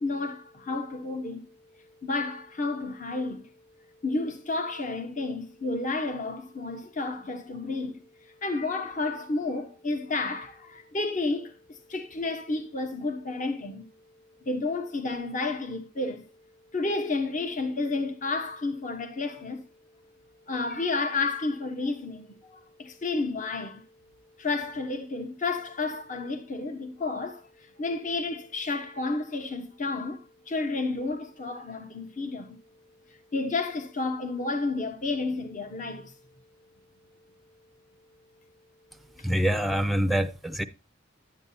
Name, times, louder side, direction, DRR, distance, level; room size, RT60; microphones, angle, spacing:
voice 1, 0.0-1.4 2.0-3.5 4.0-13.9 14.4-16.3 16.7-19.6 20.5-23.8 24.4-32.6 33.3-36.1, left 3 dB, 40° left, 1.0 m, -31 dB
voice 2, 39.2-40.6, equal, ahead, 0.5 m, -25 dB
10.0 x 8.7 x 2.7 m
head